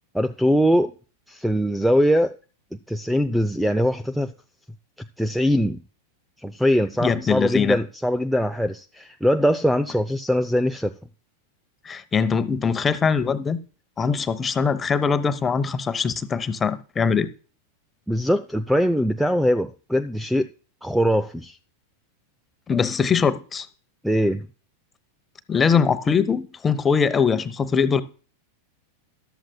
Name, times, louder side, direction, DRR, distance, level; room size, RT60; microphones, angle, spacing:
voice 1, 0.1-0.9 1.3-2.4 2.9-4.3 5.2-5.8 6.4-10.9 18.1-20.5 20.8-21.6 24.0-24.5, equal, ahead, 0.5 m, -22 dB
voice 2, 7.0-7.8 11.8-13.6 14.0-17.3 22.7-23.7 25.5-28.0, left 6 dB, 20° left, 1.0 m, -22 dB
14.0 x 12.5 x 2.3 m
figure-of-eight pair, 90°, 0 cm